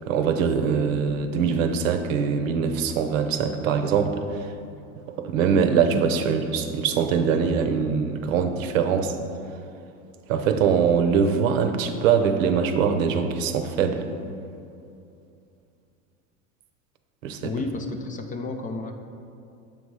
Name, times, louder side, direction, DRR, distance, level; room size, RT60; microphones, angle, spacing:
voice 1, 0.1-4.5 5.1-9.2 10.3-14.0 17.2-17.5, right 6 dB, 80° right, 7 dB, 0.7 m, -23 dB
voice 2, 17.4-18.9, left 3 dB, 20° left, 5 dB, 0.4 m, -31 dB
7.2 x 4.2 x 4.7 m, 2.5 s
hypercardioid pair, 100°, 39 cm